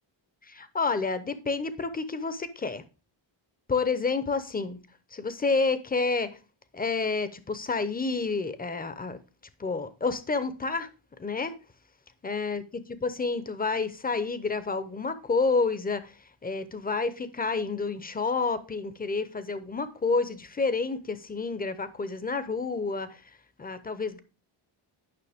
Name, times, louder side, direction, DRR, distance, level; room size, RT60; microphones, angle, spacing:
voice 1, 0.5-2.8 3.7-4.8 5.1-6.3 6.7-9.2 9.6-10.9 11.2-11.5 12.2-12.6 12.9-16.1 16.4-23.2 23.6-24.2, left 4 dB, 20° left, 0.7 m, -29 dB
9.7 x 5.6 x 3.5 m
cardioid pair, 105°, 48 cm